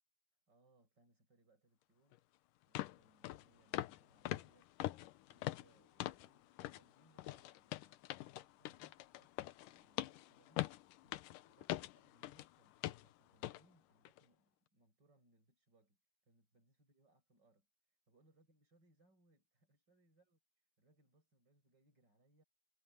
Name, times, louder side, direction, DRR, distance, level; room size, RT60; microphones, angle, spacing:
voice 1, 0.5-2.2 2.7-16.0 16.2-20.4 20.8-22.4, right 2 dB, 30° right, 8.7 m, -74 dB
sound 1, 2.1-2.2 2.8-3.0 3.2-3.4 3.7-4.0 4.3-6.3 6.6-6.8 7.2-12.5 12.8-13.1 13.4-13.6 14.1-14.2, left 16 dB, 90° left, 2.4 m, -43 dB
omnidirectional pair, 3.7 m